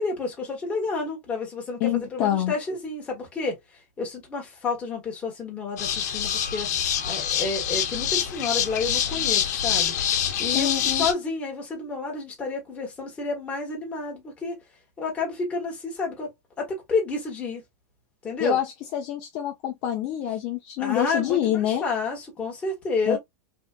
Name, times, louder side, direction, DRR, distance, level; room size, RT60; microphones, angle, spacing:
voice 1, 0.0-3.6 4.0-6.7 7.1-9.9 10.4-14.6 15.0-16.3 16.6-17.6 18.2-18.6 20.8-23.2, left 4 dB, 15° left, 1.3 m, -30 dB
voice 2, 1.8-2.5 10.5-11.1 18.4-21.9 23.1-23.2, left 11 dB, 40° left, 0.7 m, -26 dB
sound 1, 5.8-11.1, left 9 dB, 70° left, 1.0 m, -25 dB
3.5 x 2.5 x 2.4 m
supercardioid pair, 170°, 9 cm